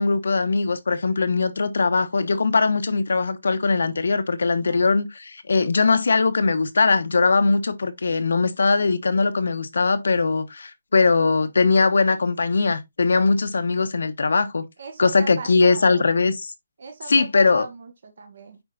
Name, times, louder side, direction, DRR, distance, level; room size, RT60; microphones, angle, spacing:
voice 1, 0.0-14.6 15.0-16.5 17.1-17.6, left 4 dB, 80° left, 1.0 m, -20 dB
voice 2, 14.8-16.1 16.8-18.6, right 4 dB, 55° right, 1.5 m, -39 dB
9.1 x 4.8 x 2.5 m
hypercardioid pair, 170°, 0 cm